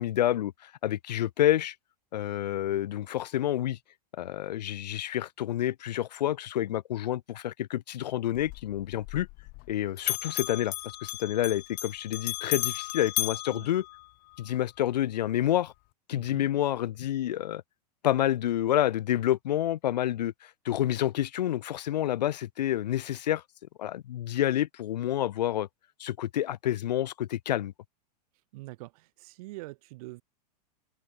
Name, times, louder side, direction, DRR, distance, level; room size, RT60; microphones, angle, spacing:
voice 1, 0.0-1.7 2.1-3.8 4.2-9.3 9.7-10.7 11.0-13.8 14.4-15.7 16.1-17.6 18.0-20.3 20.6-23.4 23.8-25.7 26.0-27.7, left 12 dB, 85° left, 0.7 m, -28 dB
Bell, 8.3-9.7 10.0-14.5, left 27 dB, 45° left, 1.8 m, -35 dB
voice 2, 16.1-16.5 28.5-30.2, right 21 dB, 60° right, 7.0 m, -44 dB
open air
hypercardioid pair, 125°, 21 cm